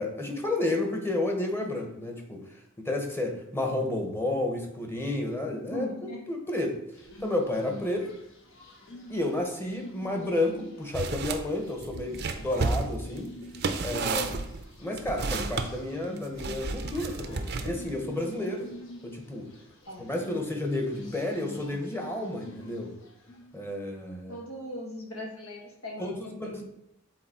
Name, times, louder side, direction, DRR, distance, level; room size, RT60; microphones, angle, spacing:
voice 1, 0.0-2.4 2.8-5.8 6.3-6.8 7.2-8.1 9.1-13.3 13.8-14.3 14.8-18.7 19.0-19.5 20.0-22.9 23.5-24.4 26.0-26.6, left 2 dB, 10° left, 2 dB, 1.0 m, -31 dB
voice 2, 5.5-6.2 18.3-18.6 19.9-20.1 24.3-26.6, left 1 dB, 80° left, 0 dB, 1.7 m, -39 dB
sound 1, 6.9-23.6, left 1 dB, 60° left, 1.4 m, -47 dB
sound 2, 10.9-11.4 11.8-15.7 16.4-17.9, right 3 dB, 50° right, 0.6 m, -31 dB
7.7 x 4.1 x 4.3 m, 0.82 s
head